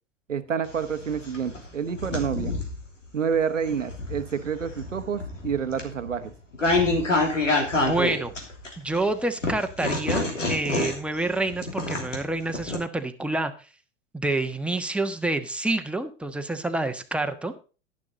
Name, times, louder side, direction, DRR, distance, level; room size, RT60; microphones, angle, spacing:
voice 1, 0.3-2.5 3.1-6.3, right 7 dB, 85° right, 10 dB, 1.2 m, -28 dB
sound 1, 0.7-2.8 3.4-9.0 9.4-12.8, left 2 dB, 90° left, 3.0 m, -27 dB
voice 2, 7.8-8.3 8.8-13.5 14.1-17.6, right 2 dB, 5° right, 6 dB, 1.3 m, -28 dB
11.5 x 11.0 x 3.8 m, 0.34 s
figure-of-eight pair, 90°, 37 cm